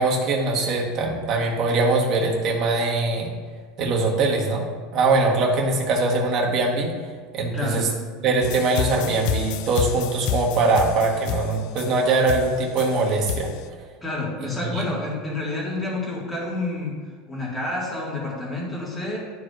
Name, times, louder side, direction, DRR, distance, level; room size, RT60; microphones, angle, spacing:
voice 1, 0.0-3.3 3.8-4.6 4.9-6.9 7.3-7.9 8.2-13.5 14.7-14.8, right 3 dB, 40° right, -1 dB, 1.3 m, -22 dB
voice 2, 7.5-7.8 14.0-17.0 17.3-19.2, left 2 dB, 15° left, -4 dB, 1.9 m, -29 dB
sound 1, 8.4-13.6, left 9 dB, 60° left, 0.4 m, -29 dB
11.5 x 4.7 x 2.6 m, 1.5 s
supercardioid pair, 140°, 0 cm